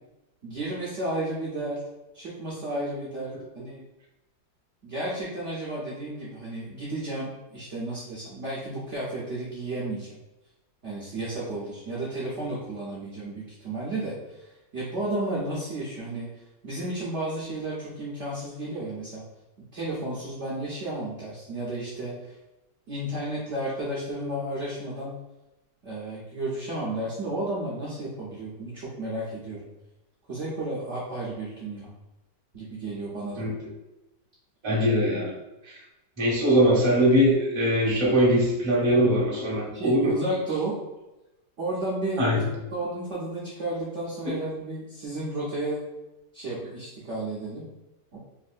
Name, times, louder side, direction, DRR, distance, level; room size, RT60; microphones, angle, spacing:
voice 1, 0.4-1.8 2.1-3.8 4.8-10.2 10.8-16.3 16.6-19.2 19.7-22.3 22.9-25.2 25.8-29.7 30.3-31.9 32.5-33.5 39.7-40.8 41.6-45.8 46.3-47.6 48.1-48.2, right 1 dB, 55° right, -7 dB, 0.8 m, -32 dB
voice 2, 34.6-35.3 36.2-40.1 42.2-42.4, equal, 20° right, -6 dB, 0.8 m, -21 dB
3.9 x 2.6 x 2.4 m, 0.98 s
omnidirectional pair, 2.0 m